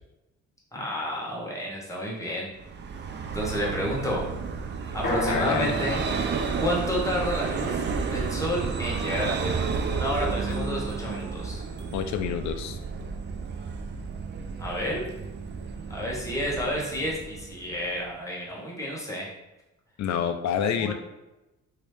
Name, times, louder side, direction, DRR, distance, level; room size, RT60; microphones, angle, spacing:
voice 1, 0.7-2.5 3.3-4.2 4.9-6.0 6.6-7.8 8.1-11.6 14.6-15.0 15.9-19.3 20.8-20.9, equal, 10° left, -4 dB, 1.1 m, -30 dB
Vehicle, 2.6-18.0, right 5 dB, 35° right, 0.4 m, -32 dB
sound 1, 5.0-9.0, left 1 dB, 35° left, 1.0 m, -33 dB
voice 2, 5.3-5.7 11.9-12.8 20.0-20.9, left 8 dB, 65° left, 8 dB, 0.5 m, -28 dB
2.9 x 2.8 x 3.2 m, 0.99 s
cardioid pair, 90°, 30 cm